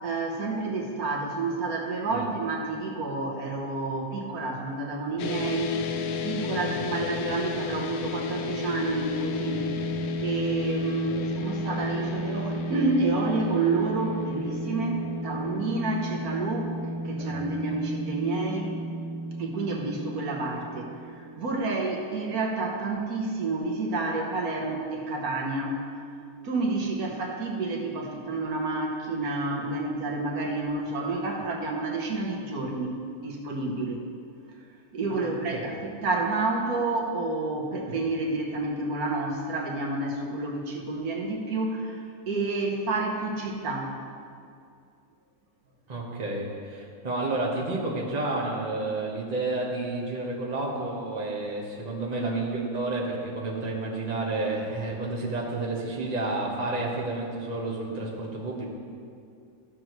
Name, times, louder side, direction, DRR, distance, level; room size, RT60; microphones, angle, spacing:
voice 1, 0.0-5.7 6.2-9.7 10.2-16.7 17.0-18.7 19.4-25.8 26.4-34.0 34.9-43.9, right 3 dB, 85° right, -1 dB, 1.6 m, -29 dB
sound 1, 5.2-21.5, left 2 dB, 70° left, 0.8 m, -32 dB
voice 2, 6.5-7.1 9.5-9.9 11.1-11.3 17.2-17.4 35.1-35.7 37.9-38.0 45.9-58.7, right 2 dB, 30° right, -3 dB, 1.3 m, -31 dB
14.0 x 6.5 x 3.1 m, 2.4 s
omnidirectional pair, 1.6 m